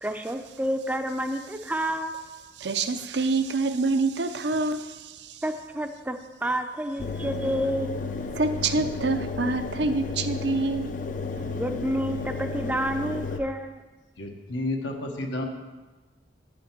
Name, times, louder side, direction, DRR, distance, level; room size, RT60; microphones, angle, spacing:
voice 1, 0.0-2.1 5.4-8.0 11.5-13.8, right 1 dB, 10° right, 7 dB, 0.5 m, -29 dB
voice 2, 2.6-5.4 8.4-10.9 11.4-11.6, right 3 dB, 65° right, 9 dB, 0.6 m, -26 dB
Engine, 7.0-13.4, left 4 dB, 45° left, 0.5 m, -33 dB
voice 3, 14.2-15.4, left 1 dB, 85° left, 1 dB, 1.3 m, -31 dB
9.1 x 5.1 x 7.4 m, 1.2 s
head